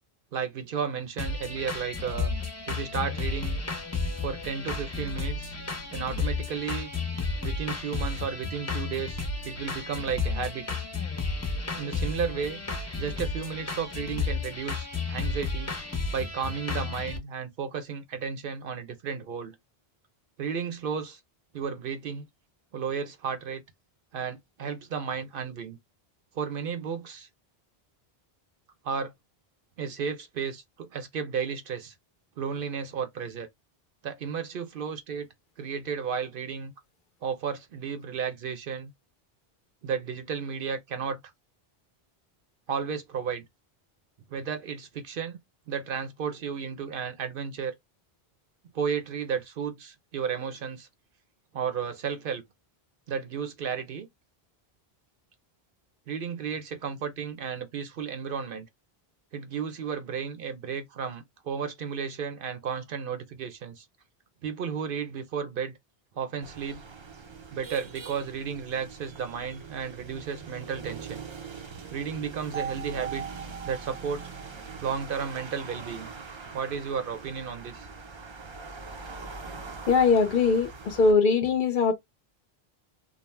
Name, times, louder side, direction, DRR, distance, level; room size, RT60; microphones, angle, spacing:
voice 1, 0.3-2.3 2.7-3.6 4.2-5.5 5.9-6.9 7.4-10.7 11.7-12.6 13.0-15.7 16.1-19.6 20.4-21.2 21.5-22.3 22.7-23.6 24.1-25.8 26.3-27.3 28.8-29.1 29.8-31.9 32.4-33.5 34.0-35.3 35.6-36.7 37.2-38.9 39.8-41.2 42.7-43.5 44.3-45.4 45.7-47.7 48.7-50.9 51.5-52.4 53.1-54.1 56.1-58.7 59.3-63.9 64.4-65.8 66.1-66.8 67.5-71.2 71.9-73.2 73.6-74.3 74.8-76.1 76.5-77.9, right 6 dB, 65° right, 0.8 m, -33 dB
sound 1, 1.2-17.2, left 4 dB, 20° left, 0.5 m, -32 dB
sound 2, 66.4-81.1, right 4 dB, 40° right, 0.4 m, -43 dB
sound 3, 72.5-76.5, right 8 dB, 85° right, 1.2 m, -41 dB
voice 2, 79.9-81.9, left 4 dB, 60° left, 0.6 m, -21 dB
2.6 x 2.0 x 3.1 m
omnidirectional pair, 1.0 m